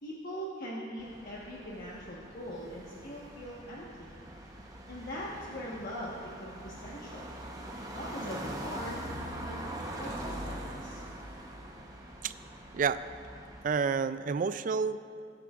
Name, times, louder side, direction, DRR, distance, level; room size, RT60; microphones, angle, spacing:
voice 1, 0.0-4.1 4.9-6.1 6.4-7.3 7.9-9.0 9.4-9.6 10.0-11.0, equal, 55° left, -5 dB, 1.3 m, -41 dB
sound 1, 1.0-13.6, right 1 dB, 20° right, 1.0 m, -43 dB
voice 2, 13.6-15.2, right 5 dB, 45° right, 13 dB, 0.3 m, -29 dB
21.5 x 9.0 x 2.5 m, 2.4 s
head